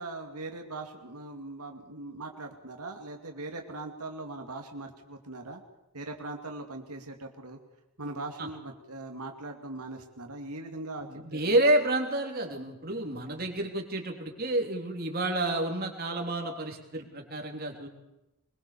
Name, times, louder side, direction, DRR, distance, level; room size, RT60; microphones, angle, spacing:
voice 1, 0.0-5.6 5.9-7.6 8.0-11.5, right 2 dB, 85° right, 3 dB, 2.4 m, -40 dB
voice 2, 11.0-17.9, right 1 dB, 45° right, 2 dB, 3.5 m, -29 dB
23.5 x 22.0 x 7.0 m, 0.92 s
head